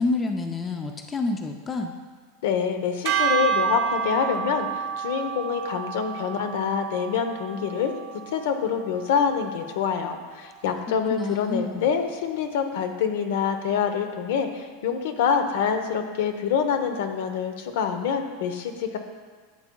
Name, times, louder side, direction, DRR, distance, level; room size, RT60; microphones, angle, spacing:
voice 1, 0.0-1.9 11.1-11.9, left 3 dB, 20° left, 4 dB, 0.5 m, -28 dB
voice 2, 2.4-7.9 8.3-19.0, left 7 dB, 75° left, 6 dB, 0.8 m, -26 dB
sound 1, 3.1-9.4, right 7 dB, 45° right, 0.8 m, -29 dB
12.0 x 7.1 x 2.3 m, 1.5 s
supercardioid pair, 145°, 0 cm